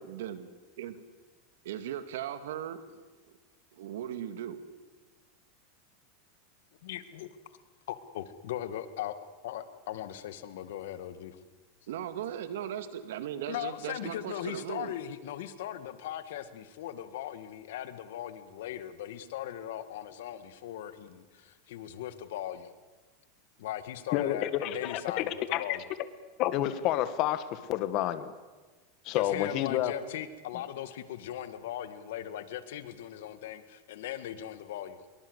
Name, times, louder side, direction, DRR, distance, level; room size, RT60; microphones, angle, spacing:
voice 1, 0.0-0.5 0.8-1.0 1.6-3.0 3.7-4.6 11.9-14.9, right 10 dB, 80° right, 11 dB, 2.2 m, -38 dB
voice 2, 6.8-7.3 7.9-9.2 9.4-11.4 13.5-22.7 23.6-25.9 29.2-35.0, left 11 dB, 80° left, 12 dB, 1.9 m, -39 dB
voice 3, 24.1-25.8 26.4-28.3 29.1-29.9, left 13 dB, 50° left, 13 dB, 1.8 m, -29 dB
24.0 x 22.5 x 8.2 m, 1.3 s
supercardioid pair, 135°, 0 cm